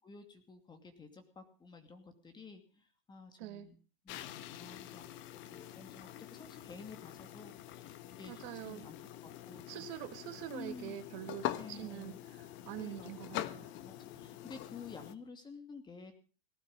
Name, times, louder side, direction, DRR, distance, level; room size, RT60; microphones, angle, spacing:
voice 1, 0.0-3.8 4.0-9.0 9.2-9.9 10.5-11.0 11.5-12.2 12.8-13.4 13.8-16.2, left 4 dB, 15° left, 7 dB, 2.5 m, -52 dB
voice 2, 3.4-3.7 8.3-8.9 9.7-13.7, right 12 dB, 50° right, 9 dB, 1.8 m, -45 dB
sound 1, 4.1-15.1, left 13 dB, 40° left, 1.2 m, -45 dB
18.0 x 12.0 x 5.5 m, 0.37 s
hypercardioid pair, 125°, 29 cm